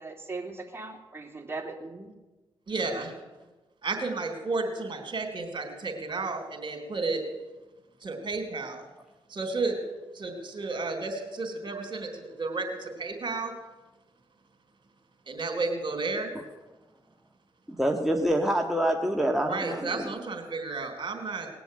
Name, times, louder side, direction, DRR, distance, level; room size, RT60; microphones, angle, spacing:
voice 1, 0.0-2.1, right 3 dB, 25° right, 1 dB, 2.9 m, -39 dB
voice 2, 2.7-3.2 3.8-7.2 8.0-8.8 9.3-9.8 10.1-13.5 15.3-16.3 19.5-21.5, right 3 dB, 45° right, 5 dB, 3.8 m, -32 dB
voice 3, 17.7-20.1, right 1 dB, 5° right, 1 dB, 1.7 m, -26 dB
19.5 x 7.0 x 9.0 m, 1.2 s
supercardioid pair, 55°, 10 cm